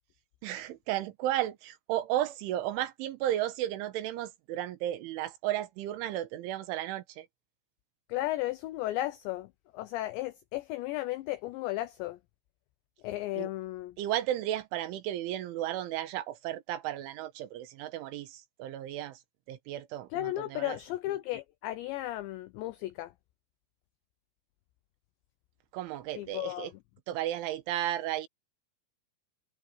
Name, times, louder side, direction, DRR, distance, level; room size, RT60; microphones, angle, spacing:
voice 1, 0.4-7.3 13.4-13.5 14.0-19.2 19.5-20.8 25.7-26.7 27.1-28.3, right 13 dB, 75° right, 3.6 m, -34 dB
voice 2, 8.1-12.2 13.0-14.0 20.1-23.1 26.2-26.7, left 16 dB, 85° left, 2.6 m, -34 dB
omnidirectional pair, 5.9 m